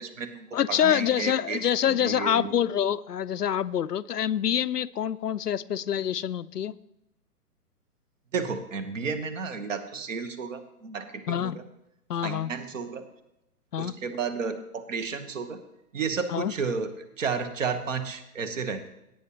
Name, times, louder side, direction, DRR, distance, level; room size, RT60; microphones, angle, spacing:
voice 1, 0.0-2.5 8.3-11.6 12.2-13.0 13.8-15.6 15.9-16.9 17.2-18.9, right 5 dB, 55° right, 10 dB, 1.3 m, -32 dB
voice 2, 0.5-6.8 11.3-11.6 12.1-12.5 13.7-13.9 16.3-16.5, left 9 dB, 80° left, 15 dB, 0.6 m, -26 dB
17.0 x 8.8 x 3.0 m, 0.86 s
figure-of-eight pair, 125°, 47 cm